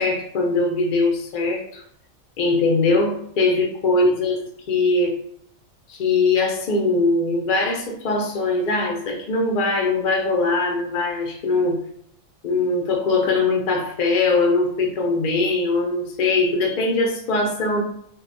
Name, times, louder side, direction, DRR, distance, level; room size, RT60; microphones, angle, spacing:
voice 1, 0.0-1.8 2.4-5.2 5.9-11.8 12.4-17.8, left 3 dB, 75° left, 1 dB, 0.4 m, -21 dB
2.7 x 2.1 x 2.5 m, 0.70 s
omnidirectional pair, 1.4 m